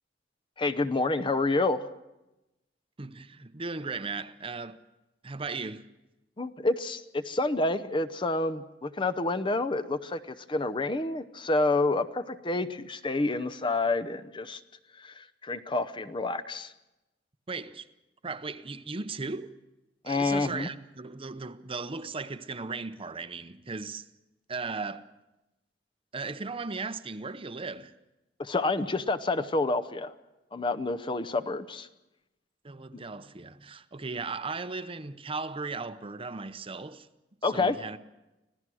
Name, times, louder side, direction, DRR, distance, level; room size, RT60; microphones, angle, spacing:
voice 1, 0.6-1.9 6.4-14.6 15.0-16.7 20.0-20.7 28.4-30.1 30.5-31.9 37.4-37.8, left 2 dB, 30° left, 0.7 m, -28 dB
voice 2, 3.0-4.8 5.2-5.9 17.5-17.9 18.2-19.6 20.1-24.1 24.5-25.1 26.1-27.9 32.6-37.1 37.4-38.0, right 4 dB, 30° right, 0.7 m, -37 dB
25.5 x 16.5 x 6.2 m
head